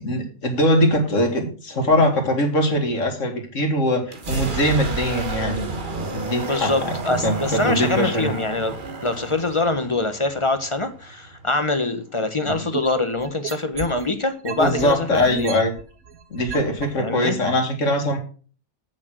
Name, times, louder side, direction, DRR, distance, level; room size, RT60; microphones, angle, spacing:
voice 1, 0.0-6.9 7.2-8.3 12.5-12.6 14.6-15.7 16.3-18.2, left 1 dB, 60° left, 4 dB, 2.4 m, -22 dB
sound 1, 4.1-11.8, right 3 dB, 35° right, 1.4 m, -31 dB
voice 2, 6.4-8.7 9.0-15.5 17.0-17.4, left 2 dB, 25° left, 8 dB, 0.9 m, -24 dB
sound 2, 12.5-14.1 14.5-16.9 17.5-17.6, right 6 dB, 80° right, 1.5 m, -34 dB
8.4 x 6.5 x 6.0 m, 0.39 s
omnidirectional pair, 1.5 m